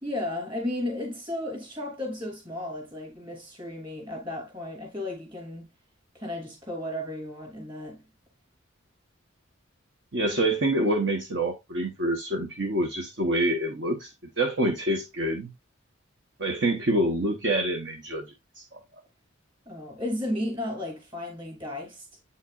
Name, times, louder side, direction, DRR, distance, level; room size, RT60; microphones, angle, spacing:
voice 1, 0.0-5.7 6.1-8.0 19.7-22.1, left 1 dB, 25° right, 2.7 m, -34 dB
voice 2, 10.1-14.1 14.4-15.5 16.4-18.2 18.6-18.8, right 1 dB, 60° right, 1.0 m, -26 dB
8.0 x 5.7 x 2.4 m
head